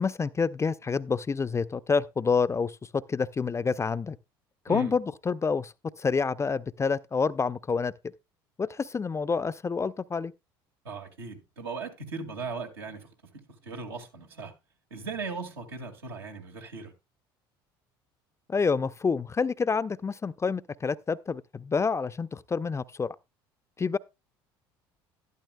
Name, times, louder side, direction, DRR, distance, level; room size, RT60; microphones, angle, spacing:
voice 1, 0.0-4.2 4.7-5.7 6.0-7.9 8.6-10.3 18.5-23.1 23.8-24.0, left 5 dB, 25° left, 0.5 m, -28 dB
voice 2, 10.8-13.1 13.6-14.5 14.9-16.9, right 4 dB, 90° right, 2.0 m, -38 dB
12.0 x 11.5 x 2.2 m
hypercardioid pair, 65°, 12 cm